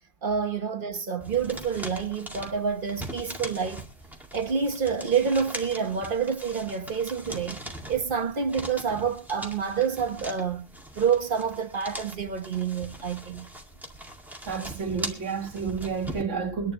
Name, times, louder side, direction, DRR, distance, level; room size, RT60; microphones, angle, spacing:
voice 1, 0.2-3.8 4.3-7.6 7.9-10.7 10.9-13.5, right 6 dB, 40° right, 1.3 m, -28 dB
sound 1, 1.2-16.2, right 1 dB, ahead, 2.1 m, -41 dB
voice 2, 14.5-16.7, right 5 dB, 60° right, 2.0 m, -30 dB
24.0 x 11.0 x 3.0 m
omnidirectional pair, 1.4 m